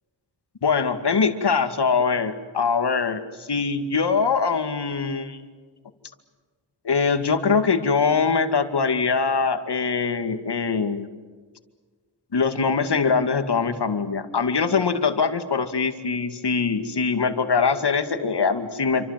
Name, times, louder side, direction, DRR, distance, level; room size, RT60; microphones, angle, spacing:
voice 1, 0.6-5.4 6.8-11.1 12.3-19.0, left 5 dB, 70° left, 8 dB, 2.3 m, -23 dB
28.5 x 25.5 x 7.6 m, 1.5 s
wide cardioid pair, 80°, 42 cm